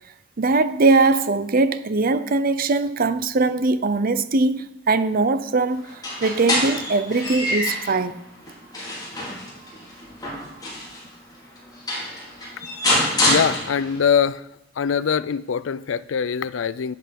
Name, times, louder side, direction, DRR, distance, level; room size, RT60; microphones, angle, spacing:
voice 1, 0.4-5.8 6.2-8.1, right 3 dB, 50° right, 0.6 m, -21 dB
sound 1, 5.9-8.0 8.5-11.0 11.6-11.7 11.9-14.1, left 1 dB, 20° left, 3.9 m, -25 dB
voice 2, 13.3-14.5 14.8-16.9, left 7 dB, 80° left, 0.4 m, -23 dB
11.0 x 8.0 x 5.3 m
head